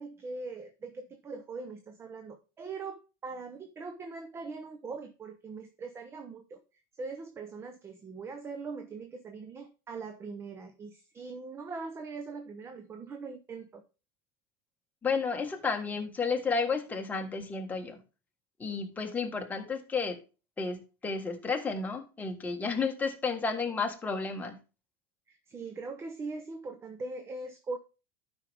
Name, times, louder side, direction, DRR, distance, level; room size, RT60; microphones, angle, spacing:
voice 1, 0.0-6.6 6.9-13.8 25.3-27.8, right 4 dB, 25° right, 7 dB, 0.8 m, -41 dB
voice 2, 15.0-18.0 18.6-20.2 20.6-24.6, left 4 dB, 15° left, 3 dB, 1.4 m, -32 dB
11.5 x 5.4 x 3.5 m, 0.32 s
supercardioid pair, 125°, 11 cm